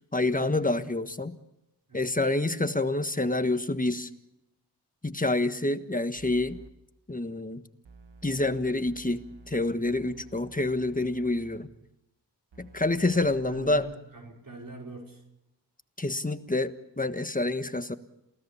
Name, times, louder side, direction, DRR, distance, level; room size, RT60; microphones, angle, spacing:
voice 1, 0.1-1.4 1.9-4.1 5.0-6.6 7.1-7.6 8.2-11.7 12.6-13.9 16.0-17.9, left 2 dB, 20° left, 10 dB, 1.5 m, -27 dB
sound 1, 6.2-6.7 7.8-11.6 12.5-14.0, right 4 dB, 75° right, 1.9 m, -52 dB
voice 2, 13.1-15.2, right 2 dB, 50° right, 0 dB, 5.7 m, -44 dB
28.0 x 17.5 x 7.2 m, 0.89 s
cardioid pair, 50°, 43 cm